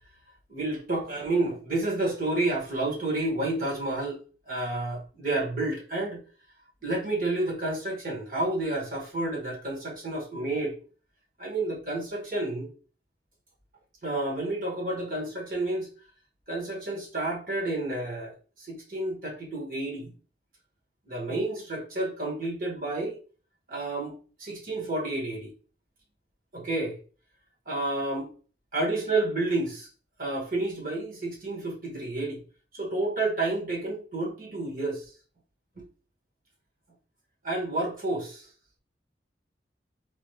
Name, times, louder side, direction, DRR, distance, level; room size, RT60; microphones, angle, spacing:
voice 1, 0.5-4.2 4.5-6.2 6.8-10.7 11.4-12.7 14.0-15.9 16.5-20.1 21.1-23.2 23.7-24.1 24.4-25.5 26.5-27.0 27.6-28.3 28.7-29.9 30.2-32.4 32.7-35.1 35.8-35.9 37.4-38.5, right 2 dB, 50° right, 1.6 m, -30 dB
4.1 x 2.5 x 3.3 m
head